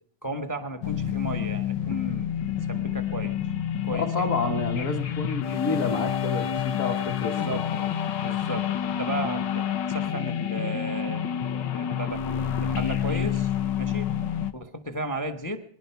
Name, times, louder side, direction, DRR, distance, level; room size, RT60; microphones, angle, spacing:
voice 1, 0.2-2.3 2.7-3.3 3.8-4.0 7.2-7.7 8.2-12.2 12.6-13.5 13.8-14.1 14.5-15.6, right 1 dB, 25° left, 8 dB, 0.4 m, -34 dB
sound 1, 0.8-14.5, left 9 dB, 65° left, 1.4 m, -28 dB
voice 2, 3.9-7.9, left 3 dB, 45° left, 3 dB, 1.3 m, -30 dB
22.5 x 11.0 x 5.7 m, 0.63 s
omnidirectional pair, 2.3 m